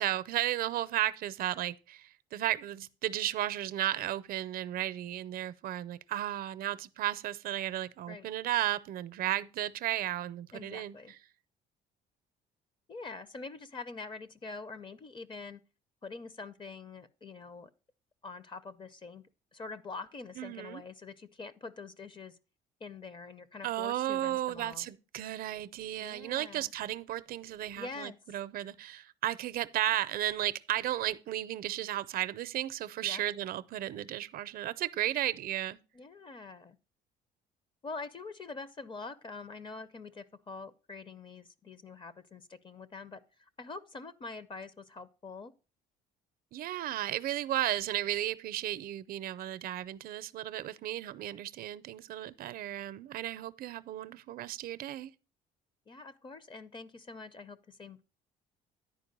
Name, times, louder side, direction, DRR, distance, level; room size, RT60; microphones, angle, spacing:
voice 1, 0.0-10.9 20.4-20.8 23.6-35.8 46.5-55.1, right 13 dB, 60° right, 0.5 m, -34 dB
voice 2, 10.5-11.1 12.9-15.6 16.0-17.7 18.2-19.3 19.5-22.4 22.8-24.9 26.0-26.7 27.8-28.2 33.0-33.2 35.9-36.8 37.8-45.5 55.9-58.0, left 4 dB, 30° left, 0.6 m, -45 dB
10.5 x 4.6 x 5.3 m
cardioid pair, 110°, 17 cm